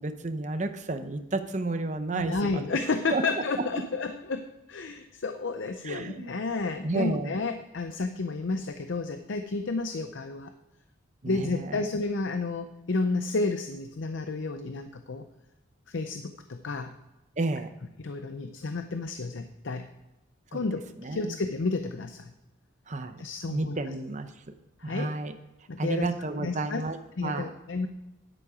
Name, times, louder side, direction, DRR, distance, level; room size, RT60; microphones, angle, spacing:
voice 1, 0.0-2.6 3.1-3.2 3.6-3.7 5.8-6.3 6.8-7.4 11.2-11.8 17.4-17.7 20.5-20.6 21.0-21.4 22.9-23.2 23.5-24.3 24.8-25.3 25.8-27.5, right 2 dB, 35° right, 8 dB, 0.7 m, -31 dB
voice 2, 2.1-10.5 11.3-15.2 15.9-16.9 18.0-19.9 20.5-22.3 23.2-23.8 24.8-25.1 25.7-26.1 26.4-26.8 27.2-27.9, left 3 dB, 65° left, 8 dB, 0.6 m, -31 dB
9.9 x 8.6 x 4.9 m, 1.0 s
head